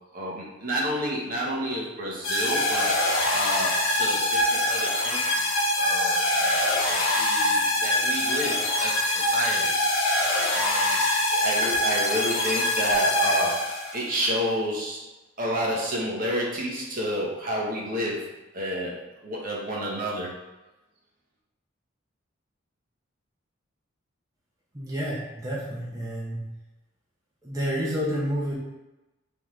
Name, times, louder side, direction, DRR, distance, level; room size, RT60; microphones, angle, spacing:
voice 1, 0.1-9.7 10.5-11.0 11.3-15.0 15.4-18.3 18.5-19.0 19.2-20.3, equal, 45° right, -4 dB, 0.9 m, -30 dB
sound 1, 2.2-14.1, left 1 dB, 75° left, 0.8 m, -24 dB
voice 2, 24.7-26.4 27.4-28.5, equal, 15° right, -7 dB, 0.7 m, -29 dB
3.8 x 3.6 x 3.1 m, 1.0 s
head